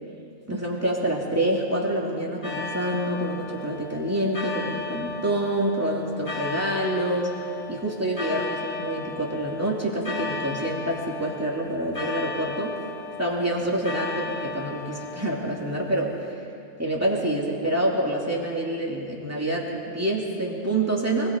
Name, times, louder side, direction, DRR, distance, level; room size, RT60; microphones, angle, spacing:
voice 1, 0.5-7.3 7.7-12.8 13.2-16.1 16.8-21.3, right 1 dB, 10° right, -3 dB, 2.8 m, -27 dB
sound 1, 2.4-16.3, left 4 dB, 60° left, 3.9 m, -35 dB
23.5 x 21.0 x 5.3 m, 2.5 s
omnidirectional pair, 1.2 m